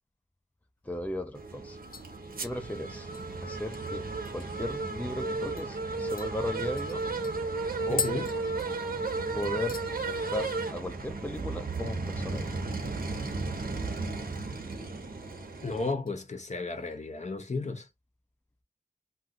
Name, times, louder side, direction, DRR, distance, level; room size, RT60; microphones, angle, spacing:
A teaspoon tapping and stirring a china mug, 0.8-0.9 1.3-1.6 1.9-4.8 5.1-5.2 5.6-5.7 6.2-9.2 9.4-9.9 10.3-10.7 10.9-11.0 13.1-13.8 14.1-14.8 15.2-15.5 16.1-17.0 17.3-17.4, left 7 dB, 70° left, 0.4 m, -42 dB
voice 1, 0.8-1.8 2.4-3.1 3.4-4.1 4.3-7.0 7.9-8.1 9.3-9.8 10.1-12.5, left 1 dB, 10° left, 0.6 m, -36 dB
sound 1, 1.3-15.9, right 3 dB, 80° right, 0.8 m, -34 dB
voice 2, 7.9-8.3 15.6-17.9, left 3 dB, 50° left, 0.8 m, -33 dB
2.7 x 2.3 x 3.6 m
wide cardioid pair, 55°, 15 cm